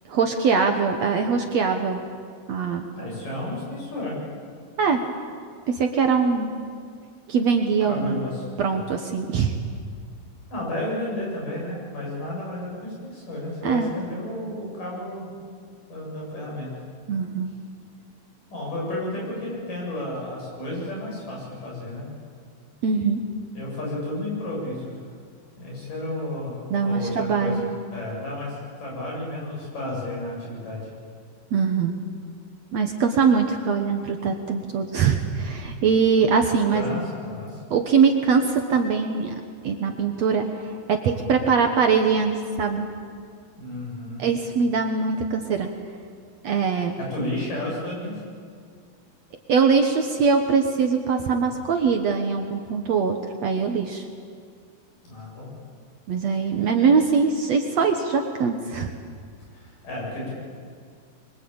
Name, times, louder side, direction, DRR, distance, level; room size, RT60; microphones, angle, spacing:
voice 1, 0.1-2.0 2.5-2.9 4.8-5.0 5.7-6.5 7.3-8.3 8.6-9.6 13.6-13.9 17.1-17.5 22.8-23.2 26.7-27.6 31.5-31.9 32.7-37.0 37.7-39.4 39.6-42.3 42.6-42.9 44.2-45.7 46.4-46.9 49.5-54.0 56.1-58.9, right 5 dB, 60° right, 4 dB, 2.1 m, -22 dB
voice 2, 3.0-4.2 7.8-8.8 10.5-15.3 15.9-16.7 18.5-22.1 23.6-25.0 25.6-27.6 27.9-30.9 36.7-37.6 43.6-44.2 47.0-48.2 55.0-55.5 56.6-56.7 59.5-60.3, left 1 dB, 65° left, -3 dB, 9.4 m, -32 dB
25.5 x 23.5 x 8.8 m, 2.1 s
omnidirectional pair, 4.1 m